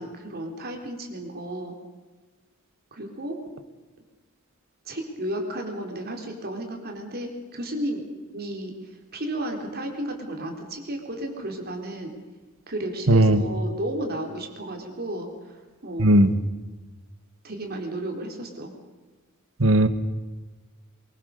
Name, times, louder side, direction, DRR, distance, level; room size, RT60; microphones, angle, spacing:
voice 1, 0.0-1.8 2.9-3.4 4.9-8.7 9.1-12.1 12.7-16.2 17.4-18.7, right 1 dB, 50° right, 3 dB, 4.3 m, -33 dB
voice 2, 13.1-13.4 16.0-16.3 19.6-19.9, right 1 dB, 65° right, 9 dB, 1.8 m, -16 dB
24.0 x 23.5 x 6.8 m, 1.3 s
head